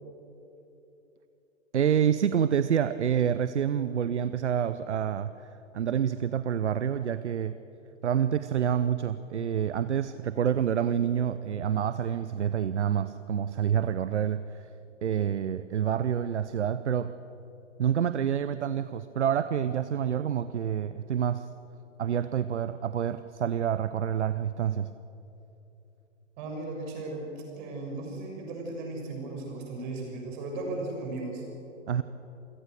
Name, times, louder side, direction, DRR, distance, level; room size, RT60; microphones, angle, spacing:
voice 1, 1.7-5.3 5.7-7.5 8.0-14.7 15.0-17.1 17.8-21.5 22.0-24.9 31.9-32.0, right 9 dB, 65° right, 13 dB, 0.8 m, -27 dB
voice 2, 26.4-27.3 27.6-31.4, right 2 dB, 40° right, 0 dB, 6.4 m, -36 dB
28.0 x 17.0 x 6.5 m, 3.0 s
figure-of-eight pair, 115°, 37 cm